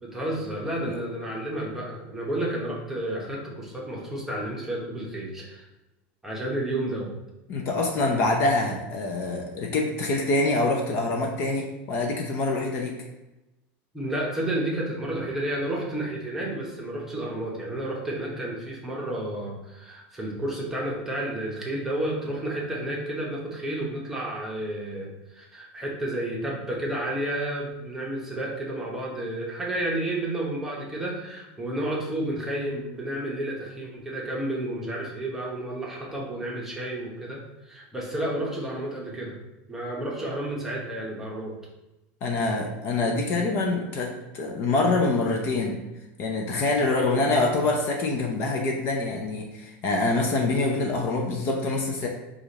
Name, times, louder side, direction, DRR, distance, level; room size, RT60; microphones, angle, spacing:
voice 1, 0.0-5.7 6.2-7.1 13.9-39.4 39.7-41.6 46.8-47.2, right 1 dB, 5° right, -3 dB, 0.9 m, -31 dB
voice 2, 7.5-12.9 42.2-45.8 46.2-52.1, left 2 dB, 40° left, 1 dB, 0.6 m, -25 dB
4.9 x 2.4 x 4.0 m, 0.99 s
supercardioid pair, 155°, 6 cm